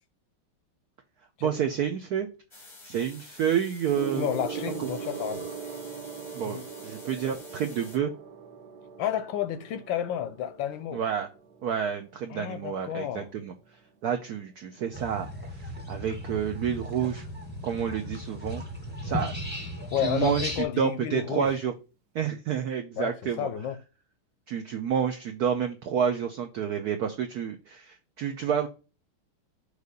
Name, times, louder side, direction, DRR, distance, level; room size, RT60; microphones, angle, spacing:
voice 1, 1.4-2.3 2.8-4.3 4.8-4.9 6.3-6.6 6.8-8.1 10.9-11.3 11.6-13.5 14.0-17.2 17.6-18.6 19.0-19.3 20.0-20.5 20.8-21.7 22.1-23.5 24.5-28.7, right 8 dB, 80° right, 0.8 m, -29 dB
sound 1, 2.5-8.0, left 2 dB, 25° left, 0.6 m, -49 dB
Gong, 3.9-13.7 14.6-14.9, right 7 dB, 60° right, 1.2 m, -41 dB
voice 2, 4.2-5.5 6.4-6.7 9.0-11.0 12.3-13.3 19.9-21.6 23.0-23.8, left 10 dB, 75° left, 1.2 m, -31 dB
sound 2, 14.9-20.6, left 1 dB, 5° right, 1.0 m, -36 dB
6.6 x 3.2 x 5.2 m
omnidirectional pair, 2.4 m